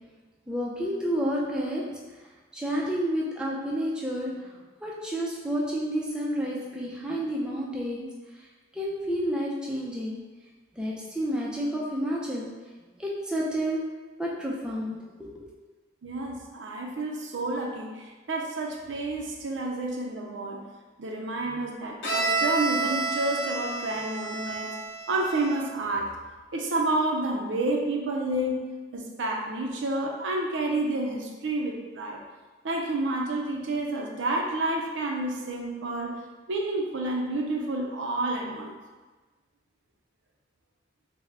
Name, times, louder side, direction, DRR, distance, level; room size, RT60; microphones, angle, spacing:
voice 1, 0.5-1.8 2.5-8.1 8.7-10.2 10.8-12.5 13.0-13.8 14.2-15.5, equal, 5° right, -5 dB, 0.4 m, -30 dB
voice 2, 16.0-20.6 21.0-24.8 25.1-26.1 26.5-28.7 28.9-32.2 32.6-36.2 36.5-38.7, right 2 dB, 75° right, 1 dB, 0.5 m, -29 dB
Bowed string instrument, 22.0-25.8, right 3 dB, 75° left, 0.8 m, -30 dB
3.5 x 2.1 x 3.2 m, 1.3 s
head